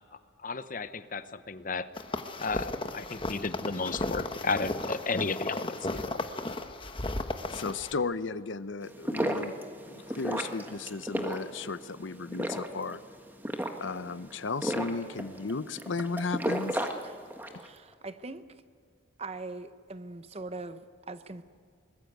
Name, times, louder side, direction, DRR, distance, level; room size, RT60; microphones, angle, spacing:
voice 1, 0.4-1.9 2.4-6.2, left 4 dB, 45° left, 12 dB, 0.9 m, -33 dB
sound 1, 2.0-7.9, left 2 dB, 25° left, 1.2 m, -35 dB
voice 2, 7.5-9.5 9.9-13.0 13.8-16.9, left 4 dB, 75° left, 15 dB, 0.7 m, -35 dB
sound 2, 8.8-17.7, right 1 dB, 10° right, 1.5 m, -34 dB
voice 3, 17.6-18.5 19.2-21.4, right 3 dB, 30° right, 12 dB, 0.9 m, -41 dB
23.5 x 21.0 x 8.1 m, 2.1 s
head